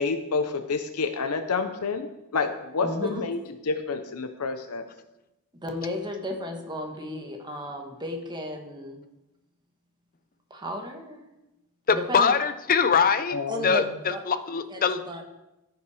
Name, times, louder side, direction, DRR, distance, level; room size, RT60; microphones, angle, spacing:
voice 1, 0.0-3.4 3.7-4.8 13.3-13.7, left 4 dB, 80° left, 8 dB, 0.7 m, -28 dB
voice 2, 2.8-3.2 5.6-9.0 10.5-11.2 11.9-12.4 13.5-14.2 14.7-15.2, left 1 dB, 20° right, 3 dB, 1.3 m, -34 dB
voice 3, 11.9-13.4 13.6-13.8 14.3-15.0, left 6 dB, 40° left, 12 dB, 0.6 m, -22 dB
14.0 x 5.8 x 4.9 m, 0.96 s
head